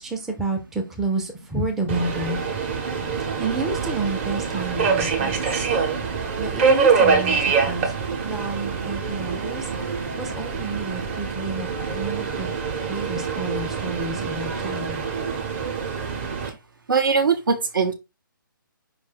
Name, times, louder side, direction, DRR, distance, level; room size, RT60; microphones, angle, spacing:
voice 1, 0.0-2.4 3.4-5.3 6.4-7.9 8.2-9.7 10.2-12.5 12.9-15.0, right 3 dB, 5° right, 0.4 m, -30 dB
Subway metro underground, 1.9-16.5, right 5 dB, 35° right, 1.0 m, -25 dB
voice 2, 16.9-17.9, right 5 dB, 70° right, 0.9 m, -20 dB
4.7 x 2.6 x 3.9 m
figure-of-eight pair, 140°, 11 cm